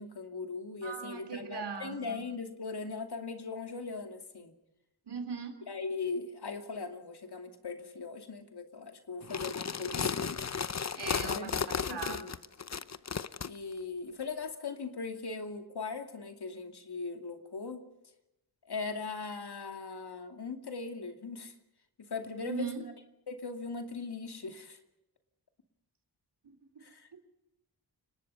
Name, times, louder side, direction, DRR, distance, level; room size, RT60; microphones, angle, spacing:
voice 1, 0.0-4.5 5.7-10.4 11.2-11.5 11.8-12.3 13.4-17.8 18.7-21.5 22.0-22.7 23.3-24.8 26.8-27.2, left 4 dB, 70° left, 5 dB, 2.6 m, -39 dB
voice 2, 0.8-2.2 5.1-5.6 10.9-12.2 22.4-22.8 26.4-26.8 27.1-27.2, right 5 dB, 85° right, 6 dB, 3.4 m, -40 dB
sound 1, 9.2-13.5, left 6 dB, 40° left, 0.8 m, -34 dB
29.5 x 19.0 x 5.6 m, 0.91 s
wide cardioid pair, 65°, 40 cm